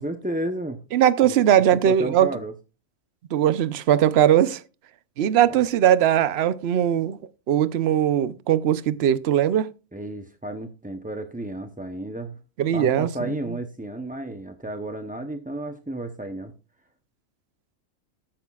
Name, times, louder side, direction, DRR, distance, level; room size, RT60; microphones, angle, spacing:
voice 1, 0.0-0.8 1.2-1.3 1.8-2.5 9.9-12.4 12.7-16.5, right 1 dB, 10° right, 0.6 m, -32 dB
voice 2, 0.9-2.4 3.3-4.6 5.2-7.2 7.5-9.7 12.6-13.6, right 10 dB, 60° right, 0.9 m, -20 dB
14.0 x 10.5 x 2.4 m
omnidirectional pair, 1.3 m